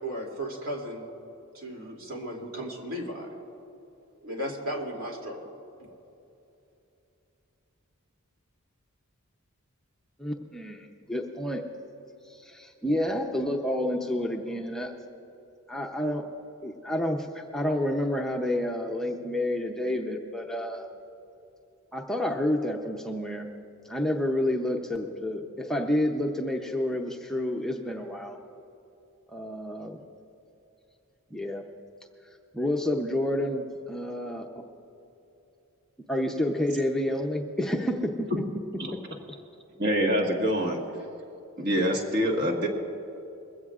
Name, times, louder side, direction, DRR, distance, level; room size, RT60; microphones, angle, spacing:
voice 1, 0.0-1.1 1.5-3.3 4.2-5.5, equal, 65° right, 0 dB, 2.7 m, -35 dB
voice 2, 10.2-11.6 12.3-14.9 15.7-16.2 16.6-20.9 21.9-23.5 23.8-28.4 29.3-30.0 31.3-31.6 32.5-34.5 36.1-38.3 38.9-39.0, left 1 dB, ahead, 0 dB, 0.6 m, -29 dB
voice 3, 39.8-40.8 41.6-42.7, equal, 50° right, 0 dB, 1.6 m, -25 dB
21.5 x 15.5 x 2.4 m, 2.8 s
head